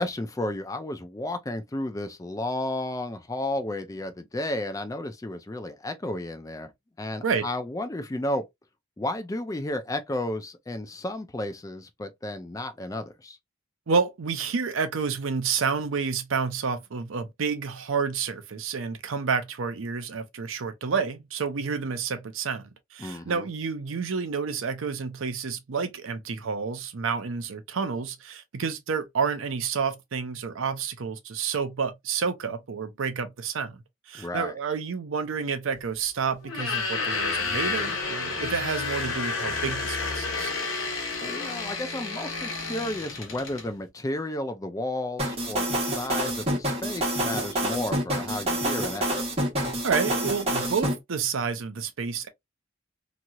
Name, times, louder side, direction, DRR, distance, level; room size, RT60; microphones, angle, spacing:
voice 1, 0.0-6.7 7.0-8.4 9.0-13.4 23.0-23.4 34.1-34.5 41.2-49.3, left 1 dB, 15° left, 0.4 m, -32 dB
voice 2, 13.9-40.5 49.8-52.3, right 5 dB, 75° right, 0.6 m, -29 dB
sound 1, 36.4-43.7, left 4 dB, 75° left, 1.1 m, -30 dB
sound 2, 45.2-50.9, right 1 dB, 30° right, 1.4 m, -27 dB
3.0 x 2.8 x 2.3 m
head